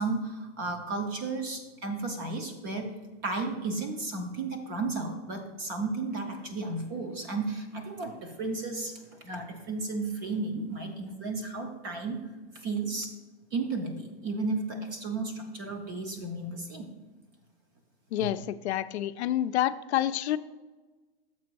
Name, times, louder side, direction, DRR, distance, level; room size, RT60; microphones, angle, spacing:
voice 1, 0.0-2.9 3.2-12.2 12.5-13.1 13.5-16.9 18.2-18.3, right 3 dB, 20° right, 5 dB, 0.4 m, -33 dB
voice 2, 18.1-20.4, left 12 dB, 80° left, 12 dB, 0.5 m, -28 dB
6.9 x 5.1 x 4.6 m, 1.3 s
supercardioid pair, 165°, 32 cm